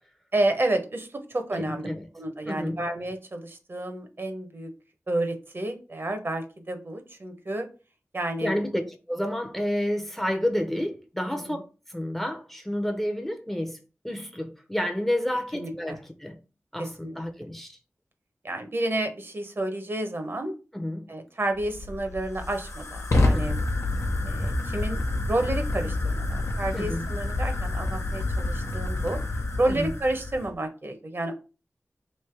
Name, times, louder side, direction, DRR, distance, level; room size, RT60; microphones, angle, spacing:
voice 1, 0.3-1.9 2.1-4.7 5.1-7.7 8.1-8.6 11.5-11.6 15.5-16.0 16.8-17.2 18.4-20.5 21.1-23.6 24.2-29.2 29.6-31.3, right 1 dB, 50° right, 0.8 m, -30 dB
voice 2, 1.6-2.1 2.5-2.8 8.4-11.6 11.9-13.8 14.0-16.4 16.7-17.8 20.7-21.1 23.3-23.5 26.7-27.1 29.7-29.9, left 1 dB, 5° left, 0.6 m, -30 dB
Fire, 21.5-30.5, left 2 dB, 85° left, 0.8 m, -28 dB
3.2 x 2.7 x 4.5 m
wide cardioid pair, 75°, 5 cm